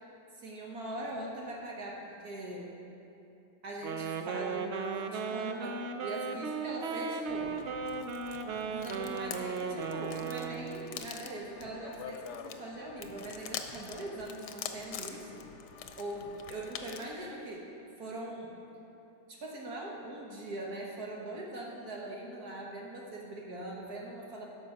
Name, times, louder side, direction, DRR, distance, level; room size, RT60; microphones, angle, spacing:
voice 1, 0.3-2.7 3.6-7.5 8.7-15.5 16.0-17.7 18.0-18.5 19.3-24.5, right 1 dB, 60° right, -2 dB, 1.6 m, -41 dB
Wind instrument woodwind instrument, 3.8-10.9, right 5 dB, 80° right, 0.6 m, -36 dB
sound 1, 7.3-17.1, left 7 dB, 75° left, 1.2 m, -45 dB
12.5 x 6.3 x 5.2 m, 2.9 s
omnidirectional pair, 1.8 m